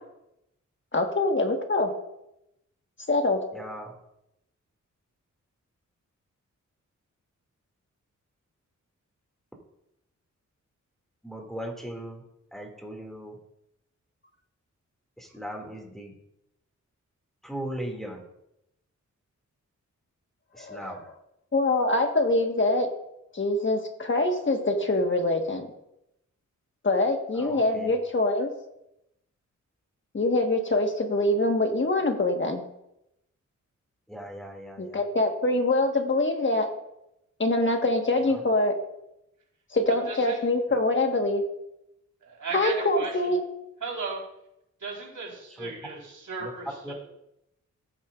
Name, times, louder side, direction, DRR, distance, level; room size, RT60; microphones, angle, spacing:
voice 1, 0.9-1.9 3.1-3.4 20.6-20.9 21.5-22.9 23.3-25.7 26.8-28.5 30.1-32.6 34.8-36.7 37.4-38.8 39.7-41.4 42.5-43.4, left 2 dB, 40° left, 4 dB, 1.4 m, -24 dB
voice 2, 3.5-3.9 11.2-12.2 12.5-13.4 15.2-16.1 17.4-18.2 20.5-21.0 27.3-27.9 34.1-35.0 38.3-38.4 45.5-45.7 46.4-46.5 46.8-46.9, right 1 dB, ahead, 0 dB, 2.2 m, -38 dB
voice 3, 40.1-40.4 42.2-43.1 43.8-44.2 44.8-46.9, right 4 dB, 90° right, -3 dB, 3.9 m, -36 dB
15.0 x 8.8 x 2.4 m, 0.83 s
wide cardioid pair, 100°, 30 cm